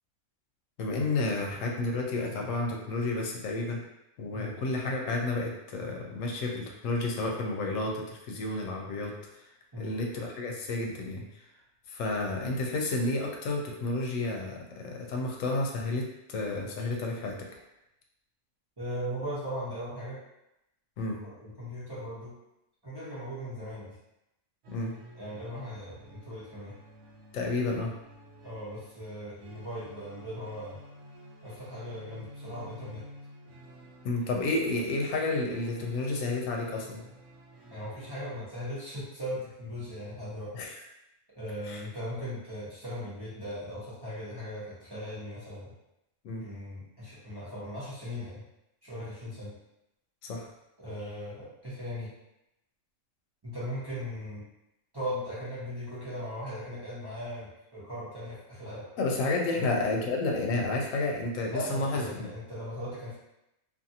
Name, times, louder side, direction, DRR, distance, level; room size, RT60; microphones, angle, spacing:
voice 1, 0.8-3.8 4.2-9.1 9.8-11.2 11.9-17.4 21.0-21.2 24.7-24.9 27.3-27.9 34.0-37.0 40.5-40.8 41.6-41.8 46.2-46.5 50.2-50.5 59.0-62.3, left 2 dB, 85° left, 0 dB, 1.0 m, -31 dB
voice 2, 18.8-20.2 21.2-22.4 22.8-24.0 25.2-26.8 28.4-30.8 31.4-33.0 37.7-40.6 41.4-45.7 46.4-48.4 48.8-49.5 50.8-52.1 53.4-54.4 54.9-58.9 59.6-59.7 61.5-63.2, equal, 20° right, -11 dB, 0.8 m, -38 dB
sound 1, 24.6-38.4, equal, 75° right, 0.9 m, -51 dB
2.5 x 2.5 x 2.7 m, 0.88 s
omnidirectional pair, 1.3 m